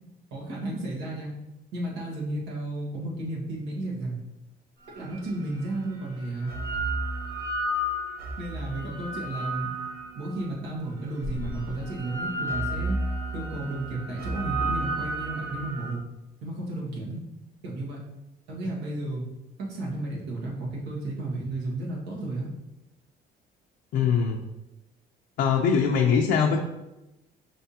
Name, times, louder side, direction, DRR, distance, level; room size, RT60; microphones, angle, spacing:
voice 1, 0.3-1.3 1.7-4.2 4.9-6.5 8.4-9.7 10.1-13.0 13.3-16.0 16.4-17.2 17.6-18.0 18.5-19.2 19.6-22.5, right 2 dB, 85° right, -3 dB, 1.5 m, -33 dB
sound 1, 5.2-5.3 6.2-10.5 11.2-15.9, right 1 dB, 65° right, 1.1 m, -32 dB
voice 2, 23.9-24.4 25.4-26.6, left 6 dB, 70° left, 0 dB, 0.5 m, -22 dB
5.3 x 3.4 x 2.8 m, 0.96 s
cardioid pair, 110°, 17 cm